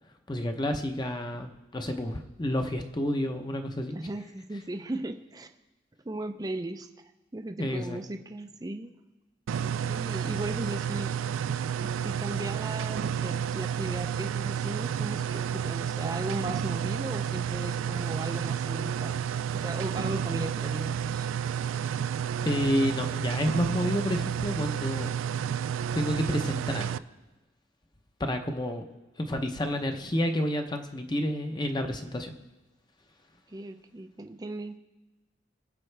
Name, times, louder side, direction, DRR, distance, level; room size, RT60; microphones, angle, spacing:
voice 1, 0.3-4.0 7.6-8.0 22.4-25.1 25.9-26.9 28.2-28.8 29.2-32.3, left 1 dB, 20° left, 5 dB, 0.7 m, -30 dB
voice 2, 3.9-5.5 6.0-6.9 7.3-8.9 9.6-11.2 11.8-19.2 19.5-21.3 33.5-34.8, right 1 dB, 20° right, 7 dB, 0.5 m, -37 dB
sound 1, 9.5-27.0, right 8 dB, 85° right, 0.3 m, -31 dB
22.5 x 7.5 x 3.3 m, 1.1 s
head